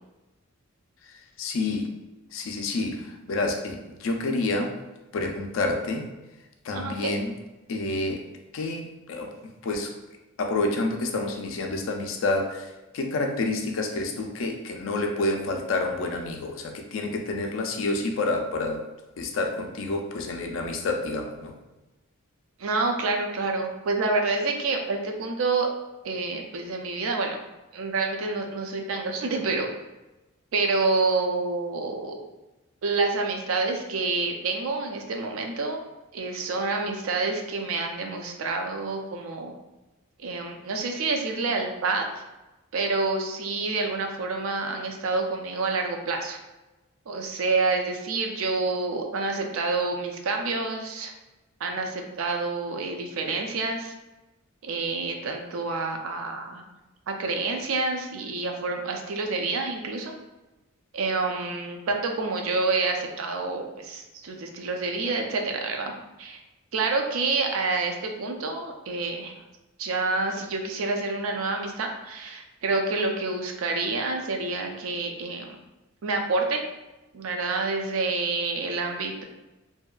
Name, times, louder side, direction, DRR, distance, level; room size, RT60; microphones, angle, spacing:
voice 1, 1.0-2.0 2.3-4.7 5.1-6.0 6.6-7.3 7.7-8.2 8.5-9.3 9.6-9.9 10.4-18.8 19.2-21.5, left 2 dB, 60° left, 3 dB, 0.4 m, -28 dB
voice 2, 6.7-7.1 22.6-25.7 26.0-27.4 27.7-29.7 30.5-32.2 32.8-35.8 36.1-39.5 40.2-42.2 42.7-46.4 47.1-51.1 51.6-53.9 54.6-56.6 57.1-60.1 60.9-65.9 66.2-66.4 66.7-69.3 69.8-75.6 76.0-76.6 77.1-79.2, right 3 dB, 70° right, 3 dB, 0.4 m, -28 dB
2.7 x 2.2 x 2.3 m, 1.1 s
head